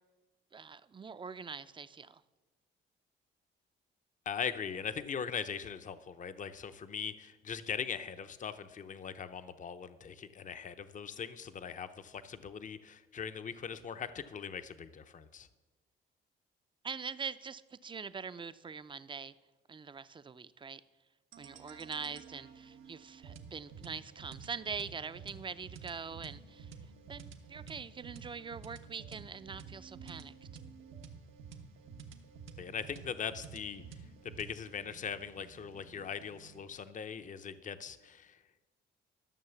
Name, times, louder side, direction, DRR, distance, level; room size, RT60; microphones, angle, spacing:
voice 1, 0.5-2.2 16.8-19.3 19.7-20.8 21.4-26.7 27.1-30.3, right 5 dB, 25° right, 14 dB, 0.5 m, -43 dB
voice 2, 4.3-15.5 32.6-33.8 34.2-38.4, left 7 dB, 40° left, 10 dB, 0.7 m, -40 dB
sound 1, 21.3-36.7, right 5 dB, 80° right, 1.2 m, -51 dB
13.0 x 6.4 x 7.0 m, 1.2 s
cardioid pair, 90°, 20 cm